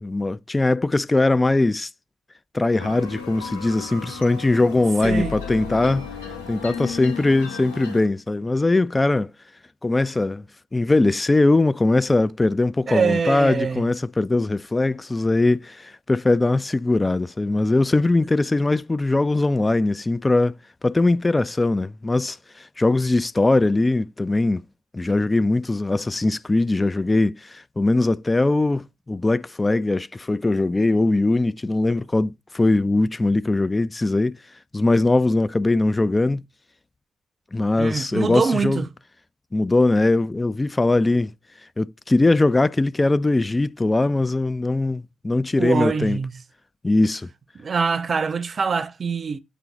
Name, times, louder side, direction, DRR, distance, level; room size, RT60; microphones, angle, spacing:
voice 1, 0.0-1.9 2.5-6.1 6.5-9.3 9.8-10.4 10.7-20.5 20.8-24.6 24.9-34.4 34.7-36.4 37.5-38.9 39.5-41.3 41.8-46.2 46.8-47.3, left 2 dB, 20° left, 0.4 m, -21 dB
sound 1, 2.8-8.0, left 6 dB, 80° left, 1.7 m, -34 dB
voice 2, 5.0-5.4 12.9-13.8 37.8-38.9 45.6-46.3 47.6-49.4, right 5 dB, 35° right, 0.6 m, -24 dB
8.3 x 3.7 x 6.0 m
figure-of-eight pair, 40°, 0 cm